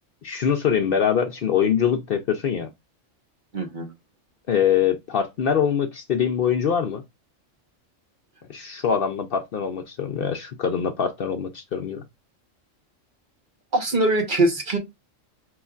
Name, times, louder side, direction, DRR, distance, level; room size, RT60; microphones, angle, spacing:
voice 1, 0.2-2.7 4.5-7.0 8.5-12.0, left 8 dB, 60° left, 0.7 m, -23 dB
voice 2, 3.5-3.9 13.7-14.8, right 2 dB, 45° right, 1.1 m, -22 dB
5.2 x 3.1 x 2.3 m
omnidirectional pair, 1.3 m